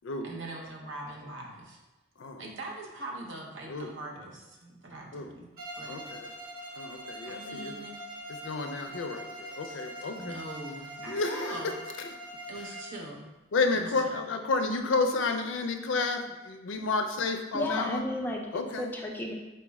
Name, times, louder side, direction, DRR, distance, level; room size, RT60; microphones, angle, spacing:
voice 1, 0.2-1.8 2.4-5.5 5.7-6.0 7.2-8.0 9.6-9.8 10.1-11.7 12.5-13.3 13.7-14.1, right 2 dB, 75° right, 0 dB, 0.7 m, -42 dB
Bowed string instrument, 5.6-13.0, equal, 45° right, 0.7 m, -43 dB
voice 2, 5.9-6.3 6.8-7.7 8.3-10.4 11.1-11.6 13.5-18.1 18.5-18.9, left 3 dB, 80° left, 6 dB, 0.4 m, -31 dB
voice 3, 17.5-19.3, left 1 dB, 10° left, 0 dB, 0.4 m, -33 dB
4.3 x 2.1 x 4.6 m, 1.1 s
head